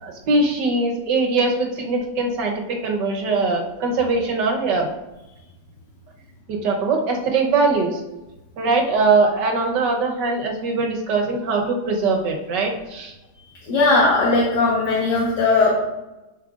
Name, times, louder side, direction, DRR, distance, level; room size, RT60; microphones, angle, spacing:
voice 1, 0.0-4.9 6.5-8.0 8.6-13.1, right 3 dB, 85° right, 2 dB, 1.6 m, -21 dB
voice 2, 13.7-15.7, left 3 dB, 80° left, -5 dB, 1.7 m, -18 dB
10.0 x 5.3 x 2.4 m, 1.0 s
omnidirectional pair, 1.8 m